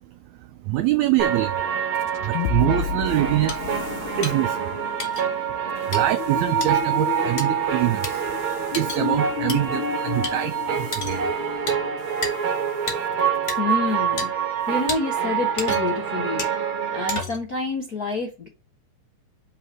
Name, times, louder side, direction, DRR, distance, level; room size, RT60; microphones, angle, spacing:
voice 1, 0.4-1.7 2.2-3.7 4.2-4.8 5.9-8.2 8.7-11.3, right 14 dB, 85° right, 1.6 m, -25 dB
sound 1, 1.2-17.2, right 8 dB, 65° right, 2.3 m, -26 dB
sound 2, 2.0-12.5, left 10 dB, 80° left, 1.6 m, -32 dB
sound 3, 3.5-3.6 4.2-4.3 5.0-5.2 5.9-6.0 6.6-6.7 7.4-7.5 8.0-8.1 8.7-9.0 9.5-9.6 10.2-10.3 10.9-11.2 11.7-11.8 12.2-12.3 12.9-13.0 13.5-13.6 14.2-14.3 14.9-15.0 15.6-16.0 16.4-16.5 17.1-17.5, left 3 dB, 30° left, 1.4 m, -30 dB
voice 2, 13.6-14.3 14.7-16.5 16.9-18.5, left 3 dB, 55° left, 1.0 m, -27 dB
5.7 x 4.8 x 5.9 m
omnidirectional pair, 3.8 m